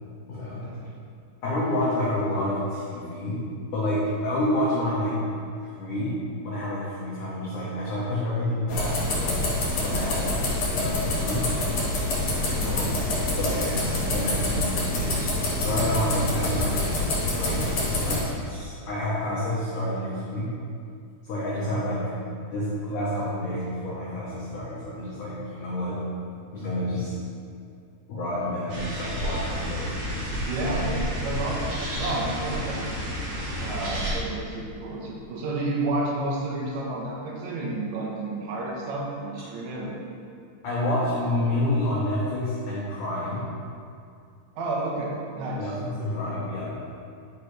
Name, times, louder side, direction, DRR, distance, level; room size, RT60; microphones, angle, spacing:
voice 1, 1.4-3.4 3.7-5.2 5.6-9.4 9.8-10.4 10.7-11.5 12.5-13.0 13.4-16.7 17.3-20.5 21.2-22.1 22.4-26.0 26.5-27.1 28.1-30.3 40.6-43.4 45.6-46.8, left 1 dB, 80° left, -7 dB, 1.8 m, -29 dB
sound 1, 8.7-18.2, left 2 dB, 55° left, 2.0 m, -26 dB
voice 2, 12.6-13.0 30.4-31.7 31.9-32.9 33.6-40.0 44.6-45.7, right 2 dB, 80° right, -3 dB, 3.3 m, -31 dB
sound 2, 28.7-34.1, equal, 60° right, 1.2 m, -31 dB
11.0 x 5.3 x 3.2 m, 2.4 s
omnidirectional pair, 5.2 m